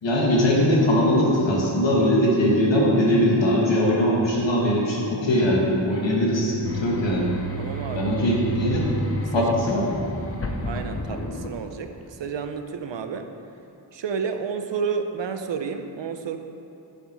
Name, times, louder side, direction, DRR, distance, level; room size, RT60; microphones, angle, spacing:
voice 1, 0.0-7.3 7.9-8.9 9.3-9.9, equal, 70° left, -4 dB, 2.2 m, -21 dB
sound 1, 6.6-12.0, right 1 dB, 30° left, 0.7 m, -31 dB
voice 2, 7.6-8.1 9.4-9.5 10.6-11.9 12.2-13.3 13.9-16.4, right 6 dB, 65° right, 6 dB, 0.8 m, -30 dB
10.5 x 7.4 x 4.7 m, 3.0 s
wide cardioid pair, 125°, 46 cm